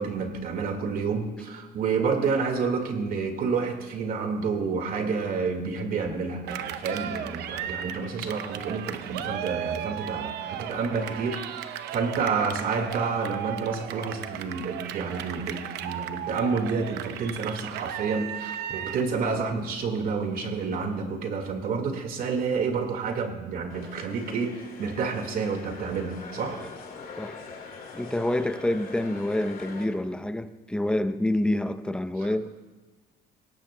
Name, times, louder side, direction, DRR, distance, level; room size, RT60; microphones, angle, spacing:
voice 1, 0.0-26.6 32.2-32.3, right 5 dB, 60° right, 5 dB, 1.9 m, -29 dB
Cheering, 6.5-19.1, right 10 dB, 80° right, 0.7 m, -35 dB
sound 1, 23.7-29.8, left 4 dB, 55° left, 2.3 m, -43 dB
voice 2, 27.9-32.5, left 1 dB, 5° left, 11 dB, 0.6 m, -27 dB
20.0 x 17.0 x 2.2 m, 1.2 s
cardioid pair, 110°, 17 cm